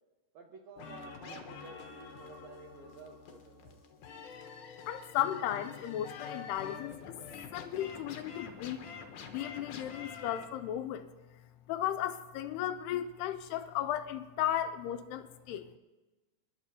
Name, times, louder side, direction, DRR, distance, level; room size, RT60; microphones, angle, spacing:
voice 1, 0.3-3.8, right 4 dB, 85° right, 1 dB, 1.5 m, -52 dB
sound 1, 0.8-10.4, left 6 dB, 65° left, 2.0 m, -47 dB
voice 2, 4.9-7.2 7.5-8.8 9.3-11.1 11.7-15.8, left 11 dB, 80° left, 9 dB, 2.5 m, -35 dB
28.0 x 11.5 x 2.8 m, 1.2 s
omnidirectional pair, 5.0 m